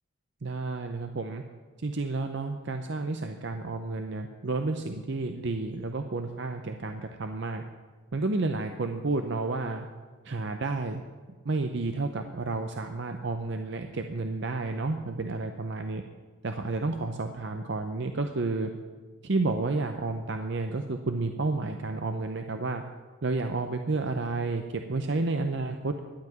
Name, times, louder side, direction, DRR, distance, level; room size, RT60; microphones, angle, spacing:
voice 1, 0.4-1.4 1.8-7.6 8.1-9.9 10.2-11.0 11.4-16.0 16.4-18.7 19.2-22.8 23.2-25.9, right 3 dB, 55° right, 6 dB, 0.6 m, -31 dB
12.0 x 5.8 x 9.1 m, 1.4 s
head